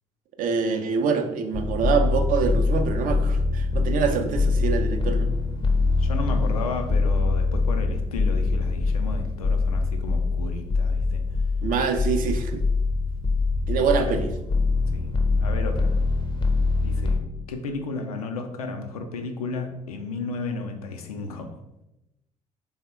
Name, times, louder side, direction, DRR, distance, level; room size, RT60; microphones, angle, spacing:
voice 1, 0.4-5.3 11.6-12.6 13.7-14.3, right 5 dB, 50° right, 6 dB, 0.5 m, -25 dB
sound 1, 1.5-17.2, left 3 dB, 30° left, 0.5 m, -24 dB
voice 2, 6.0-11.2 14.0-14.1 14.9-15.1 15.4-16.0 16.8-17.2 17.5-21.6, left 3 dB, 80° left, 5 dB, 0.4 m, -33 dB
3.5 x 2.1 x 4.1 m, 0.91 s
figure-of-eight pair, 50°, 18 cm